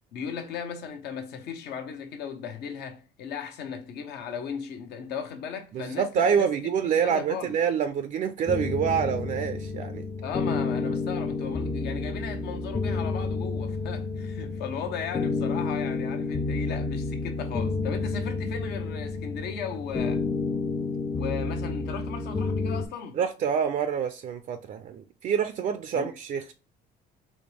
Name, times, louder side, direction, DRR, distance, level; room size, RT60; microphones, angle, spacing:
voice 1, 0.1-6.5 6.8-7.5 10.2-20.2 21.1-23.2 25.9-26.1, left 7 dB, 75° left, 0.8 m, -36 dB
voice 2, 5.7-10.0 23.1-26.5, right 7 dB, 50° right, 0.4 m, -27 dB
sound 1, 8.5-22.9, left 3 dB, 15° left, 0.4 m, -30 dB
4.2 x 3.0 x 3.3 m
cardioid pair, 110°, 17 cm